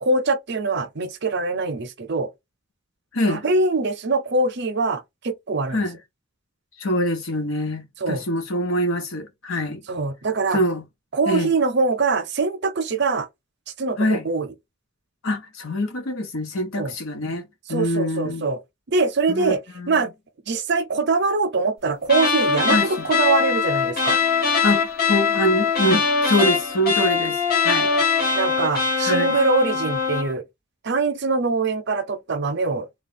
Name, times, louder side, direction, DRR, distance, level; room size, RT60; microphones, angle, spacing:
voice 1, 0.0-2.3 3.3-5.8 8.0-8.2 9.9-10.6 11.1-13.3 13.8-14.5 16.8-16.9 17.7-18.6 18.9-19.6 19.9-20.1 20.5-24.2 27.9-28.0 28.3-30.4 30.8-32.9, right 3 dB, 55° right, 0.6 m, -23 dB
voice 2, 3.1-3.4 5.7-6.0 6.8-9.8 10.5-10.8 11.3-11.5 14.0-14.3 15.2-17.4 17.7-18.4 19.3-19.9 22.7-23.0 24.6-27.9 29.0-29.4, equal, 80° left, 1.1 m, -24 dB
sound 1, 22.0-30.3, left 5 dB, 45° left, 1.5 m, -22 dB
3.4 x 2.3 x 4.0 m
head